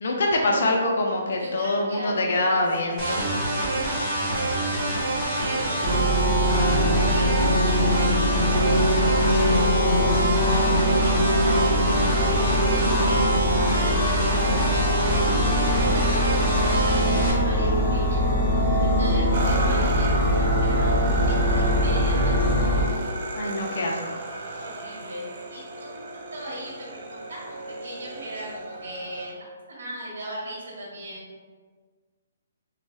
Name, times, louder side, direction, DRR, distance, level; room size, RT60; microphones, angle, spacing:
voice 1, 0.0-3.3 23.4-24.2, left 2 dB, 60° left, 0 dB, 0.4 m, -25 dB
voice 2, 1.4-7.9 8.2-8.9 9.5-13.2 13.5-14.5 14.8-18.2 18.8-22.9 24.6-31.2, right 1 dB, 70° right, -4 dB, 1.1 m, -39 dB
sound 1, 3.0-17.3, right 1 dB, 10° right, 1.0 m, -26 dB
sound 2, 5.8-22.8, equal, 30° left, 0.7 m, -22 dB
sound 3, 19.3-29.3, right 2 dB, 45° right, 0.4 m, -33 dB
2.6 x 2.2 x 3.1 m, 1.5 s
hypercardioid pair, 165°, 0 cm